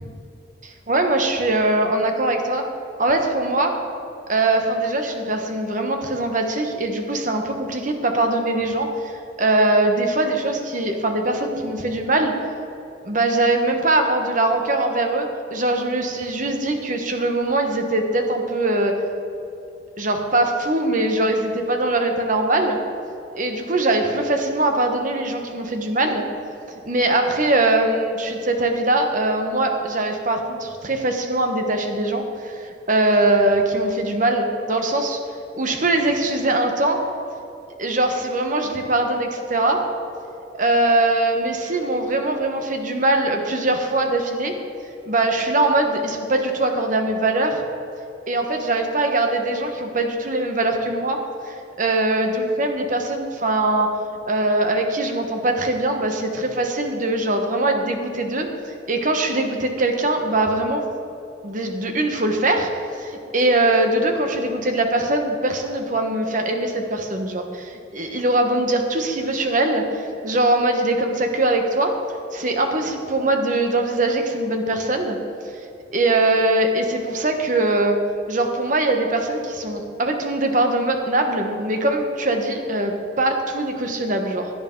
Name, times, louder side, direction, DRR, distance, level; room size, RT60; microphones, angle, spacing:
voice 1, 0.6-2.6 3.0-3.7 4.3-12.3 13.0-18.9 20.0-22.8 23.3-26.2 26.8-35.2 35.5-37.0 37.8-39.8 40.5-44.5 45.1-47.6 48.3-51.2 51.4-53.9 54.2-58.5 58.9-60.8 61.4-62.7 63.0-71.9 72.3-75.2 75.9-78.0 78.3-84.5, right 2 dB, 45° right, 4 dB, 1.2 m, -22 dB
16.5 x 10.0 x 3.9 m, 2.8 s
head